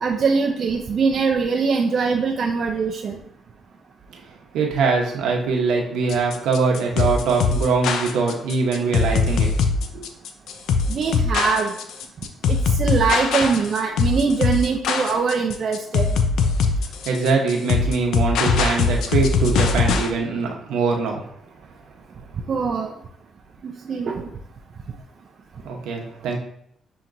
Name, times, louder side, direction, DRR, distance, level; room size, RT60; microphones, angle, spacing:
voice 1, 0.0-3.2 10.9-11.7 12.5-16.2 22.5-22.9 23.6-24.3, right 5 dB, 55° right, 1 dB, 0.4 m, -22 dB
voice 2, 4.5-9.5 9.9-10.1 17.0-21.2 25.6-26.4, right 4 dB, 85° right, 0 dB, 0.9 m, -22 dB
sound 1, 6.1-20.1, left 5 dB, 80° left, 0.4 m, -21 dB
7.2 x 2.8 x 2.6 m, 0.71 s
cardioid pair, 90°, 0 cm